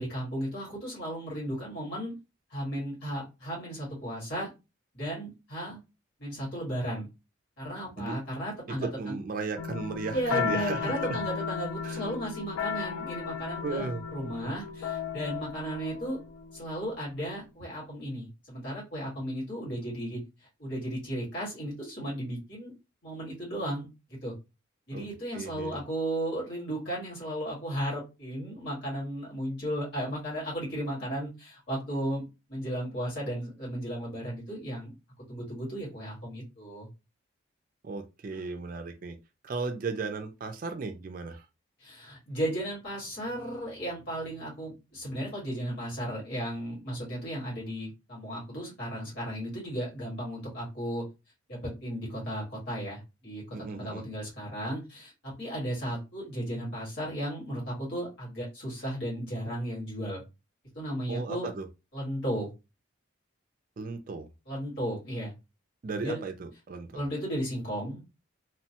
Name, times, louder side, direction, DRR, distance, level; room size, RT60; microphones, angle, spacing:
voice 1, 0.0-2.1 2.5-4.5 4.9-5.8 6.2-7.1 7.6-9.2 10.1-16.2 16.5-20.2 20.6-22.7 23.0-24.3 24.9-34.9 35.3-36.9 41.8-51.0 51.5-53.4 53.7-60.2 60.7-61.5 61.9-62.5 64.5-65.3 66.0-66.2 66.9-68.0, equal, 60° left, 1.8 m, -35 dB
voice 2, 8.7-11.2 11.8-12.1 13.6-14.0 24.9-25.1 25.3-25.8 37.8-39.2 39.4-41.5 53.5-54.0 61.1-61.7 63.8-64.3 65.8-67.0, right 4 dB, 45° right, 0.3 m, -35 dB
sound 1, 9.6-17.0, left 6 dB, 90° left, 0.4 m, -35 dB
2.9 x 2.2 x 2.8 m
head